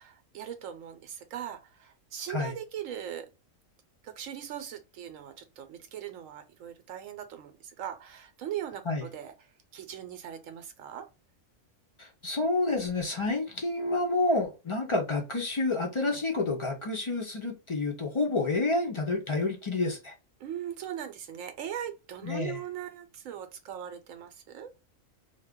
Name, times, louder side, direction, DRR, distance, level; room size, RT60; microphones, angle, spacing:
voice 1, 0.0-3.3 4.0-9.3 9.7-11.1 20.4-24.7, right 10 dB, 75° right, 1.0 m, -40 dB
voice 2, 12.0-20.1 22.2-22.6, left 2 dB, 50° left, 0.3 m, -29 dB
2.4 x 2.2 x 3.4 m
omnidirectional pair, 1.4 m